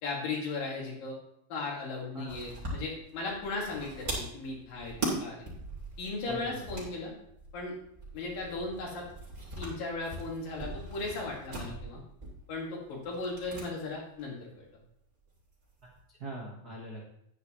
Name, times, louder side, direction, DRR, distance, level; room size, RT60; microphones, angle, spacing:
voice 1, 0.0-1.2 1.5-5.4 6.0-7.1 7.5-7.7 8.1-9.0 9.6-12.0 12.5-14.7, left 3 dB, 70° left, -2 dB, 4.0 m, -37 dB
sound 1, 2.3-13.7 13.9-14.0 15.3-16.0, right 2 dB, 20° right, 3.2 m, -41 dB
voice 2, 6.3-6.7 15.8-17.0, right 2 dB, 70° right, -3 dB, 0.9 m, -42 dB
10.5 x 9.8 x 3.1 m, 0.76 s
omnidirectional pair, 4.3 m